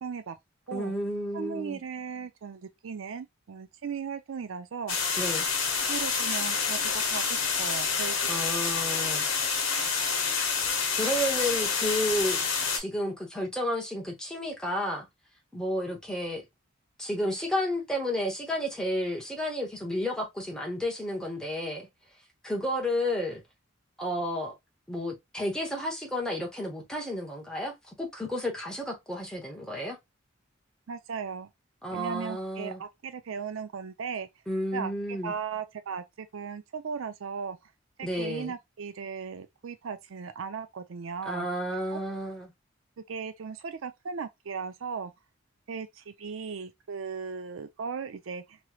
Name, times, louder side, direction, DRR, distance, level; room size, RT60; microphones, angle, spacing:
voice 1, 0.0-0.4 0.7-0.9 1.3-5.0 5.9-8.3 30.9-31.5 31.9-34.3 34.7-37.6 38.0-41.5 41.9-42.0 43.0-45.1 45.7-48.6, right 6 dB, 80° right, 0.5 m, -37 dB
voice 2, 0.7-1.8 5.2-5.5 8.2-9.3 10.9-12.4 12.7-15.1 15.5-16.4 17.0-21.9 22.4-23.4 24.0-24.5 24.9-30.0 31.8-32.8 34.5-35.3 38.0-38.5 41.2-42.5, equal, 5° left, 0.9 m, -31 dB
sound 1, 4.9-12.8, left 5 dB, 85° left, 0.9 m, -28 dB
3.1 x 3.0 x 2.3 m
head